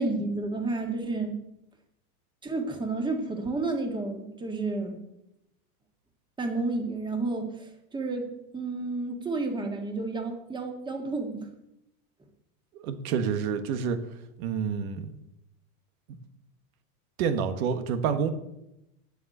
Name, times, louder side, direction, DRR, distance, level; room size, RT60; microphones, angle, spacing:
voice 1, 0.0-1.4 2.4-5.0 6.4-7.5 7.9-8.3 8.5-11.5, right 3 dB, 10° right, 3 dB, 1.6 m, -30 dB
voice 2, 12.7-14.0 14.4-15.1 17.2-18.3, right 6 dB, 70° right, 9 dB, 1.5 m, -28 dB
9.6 x 7.2 x 6.7 m, 0.85 s
supercardioid pair, 140°, 44 cm